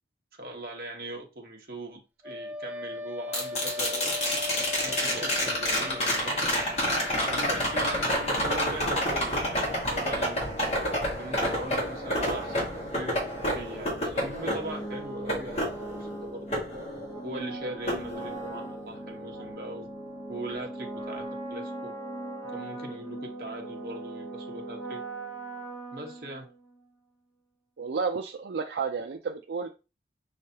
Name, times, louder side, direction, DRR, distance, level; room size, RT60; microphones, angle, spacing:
voice 1, 0.4-4.4 4.8-6.5 7.3-10.5 11.1-13.2 13.5-16.6 17.2-19.9 20.3-21.9 22.5-25.0 25.9-26.5, right 1 dB, 55° right, 1.3 m, -40 dB
Wind instrument woodwind instrument, 2.2-8.8, left 3 dB, 10° right, 0.3 m, -39 dB
sound 1, 3.3-17.4 17.9-18.9 21.1-21.2, equal, 35° left, 1.4 m, -29 dB
sound 2, 9.1-26.8, right 2 dB, 15° left, 1.5 m, -41 dB
voice 2, 27.8-29.7, right 5 dB, 75° right, 0.4 m, -31 dB
5.4 x 3.2 x 2.8 m
head